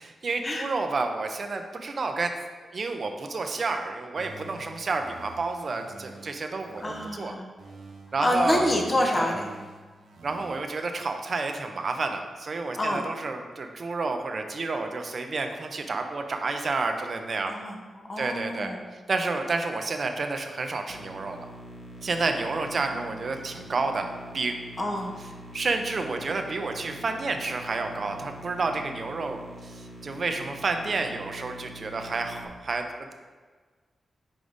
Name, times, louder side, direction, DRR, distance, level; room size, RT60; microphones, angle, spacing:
voice 1, 0.0-2.3 2.7-7.4 8.1-8.7 9.1-9.4 10.2-17.5 18.2-18.7 19.1-21.5 22.0-24.1 24.3-24.6 25.5-32.8, right 3 dB, 45° right, 5 dB, 0.6 m, -30 dB
sound 1, 4.2-7.2 7.6-10.6, right 3 dB, 85° right, 0.7 m, -47 dB
voice 2, 6.8-7.5 8.2-9.5 12.8-13.1 17.4-18.8 22.9-23.0 24.8-25.1, left 1 dB, 25° left, 1 dB, 0.8 m, -27 dB
sound 2, 20.9-32.5, right 1 dB, 80° left, 1.1 m, -45 dB
5.1 x 4.8 x 3.9 m, 1.4 s
wide cardioid pair, 120°, 0 cm